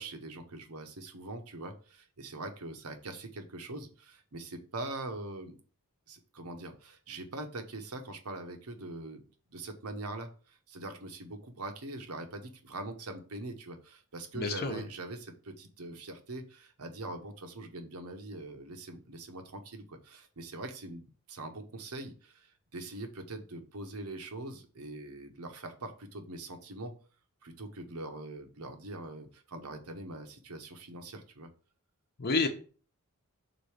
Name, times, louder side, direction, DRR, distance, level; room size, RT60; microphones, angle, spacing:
voice 1, 0.0-5.5 6.1-9.2 9.5-26.9 27.4-31.5, right 2 dB, 90° right, 6 dB, 1.1 m, -43 dB
voice 2, 14.3-14.8 32.2-32.5, left 3 dB, 45° left, 4 dB, 0.8 m, -29 dB
5.2 x 4.1 x 4.9 m, 0.40 s
head